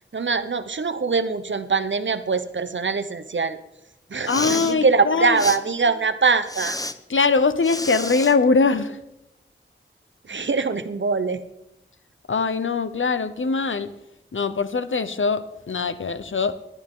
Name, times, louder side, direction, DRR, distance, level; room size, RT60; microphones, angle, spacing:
voice 1, 0.1-3.6 4.1-6.8 10.3-11.4, right 4 dB, 70° right, 12 dB, 1.0 m, -23 dB
Respiratory sounds, 4.1-4.7 5.4-5.6 6.5-6.9 7.6-8.3, left 1 dB, 15° left, 0.9 m, -30 dB
voice 2, 4.3-5.4 7.1-9.0 12.3-13.9 14.3-16.6, left 4 dB, 75° left, 12 dB, 0.9 m, -22 dB
19.5 x 12.0 x 3.8 m, 0.87 s
wide cardioid pair, 45°, 20 cm